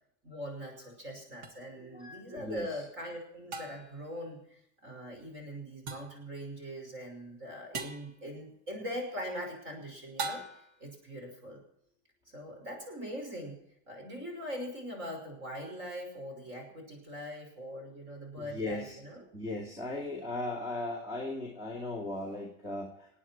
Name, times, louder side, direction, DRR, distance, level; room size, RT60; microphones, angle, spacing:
voice 1, 0.2-4.4 4.8-10.4 10.8-11.6 12.3-13.6 13.9-19.2, equal, 30° right, 3 dB, 5.7 m, -41 dB
sound 1, 1.4-1.5 3.5-4.0 5.9-6.2 7.7-8.1 10.2-10.8, right 4 dB, 55° right, 1.9 m, -39 dB
voice 2, 1.9-2.7 18.5-19.0 19.3-23.1, left 2 dB, 15° right, -2 dB, 2.3 m, -37 dB
26.5 x 9.6 x 4.5 m, 0.74 s
supercardioid pair, 180°, 38 cm